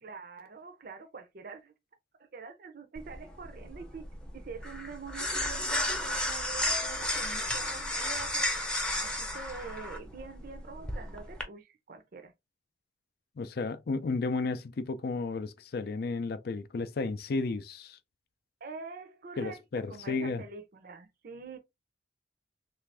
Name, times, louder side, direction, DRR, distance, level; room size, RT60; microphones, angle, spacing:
voice 1, 0.0-1.7 2.2-4.0 4.3-12.3 18.6-21.6, right 4 dB, 50° right, 0.5 m, -45 dB
sound 1, 2.9-11.4, left 1 dB, 5° left, 0.6 m, -33 dB
voice 2, 13.4-18.0 19.4-20.4, left 3 dB, 55° left, 0.4 m, -33 dB
3.3 x 2.5 x 3.2 m
head